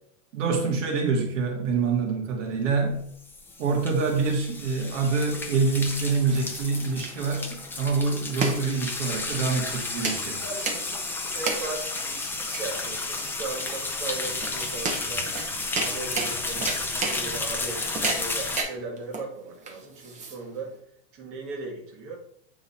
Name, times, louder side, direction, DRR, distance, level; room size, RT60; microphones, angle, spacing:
voice 1, 0.3-3.0 3.6-10.4, right 4 dB, 85° right, 1 dB, 1.9 m, -26 dB
sound 1, 2.9-18.6, left 3 dB, 5° left, 0.5 m, -32 dB
sound 2, 5.8-20.8, right 3 dB, 20° right, 1.1 m, -34 dB
voice 2, 10.4-15.3 15.7-20.8 21.1-22.2, right 3 dB, 35° right, -1 dB, 1.8 m, -37 dB
8.9 x 3.9 x 4.3 m, 0.71 s
supercardioid pair, 155°, 36 cm